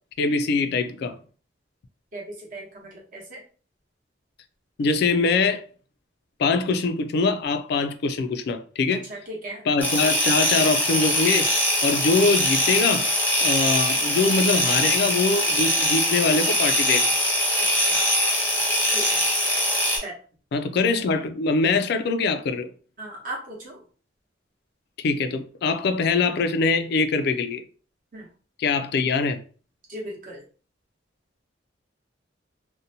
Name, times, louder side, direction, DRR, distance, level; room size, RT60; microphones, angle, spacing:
voice 1, 0.2-1.2 4.8-5.6 6.4-9.1 9.7-11.5 11.8-13.1 13.4-17.1 20.5-22.7 25.0-27.6 28.6-29.4, left 4 dB, 55° left, 0.3 m, -23 dB
voice 2, 2.1-3.4 9.1-9.6 17.7-18.1 18.9-19.3 20.0-20.1 23.0-23.8 28.1-28.3 29.9-30.4, right 1 dB, 45° right, 0.9 m, -37 dB
sound 1, 9.8-20.0, equal, 10° left, 0.6 m, -22 dB
2.6 x 2.1 x 2.7 m
head